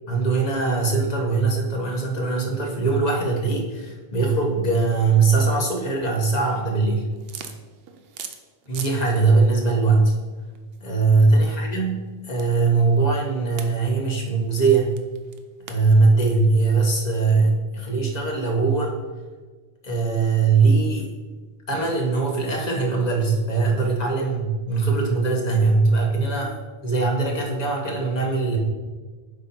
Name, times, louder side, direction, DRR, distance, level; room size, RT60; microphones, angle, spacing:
voice 1, 0.1-7.1 8.7-10.1 10.8-14.9 15.7-18.9 19.8-21.1 21.7-26.5 26.8-28.6, right 4 dB, 40° left, 0 dB, 1.2 m, -21 dB
sound 1, 7.1-9.0 9.3-17.5, right 7 dB, 65° right, 0.8 m, -43 dB
8.1 x 3.0 x 5.4 m, 1.3 s
omnidirectional pair, 1.1 m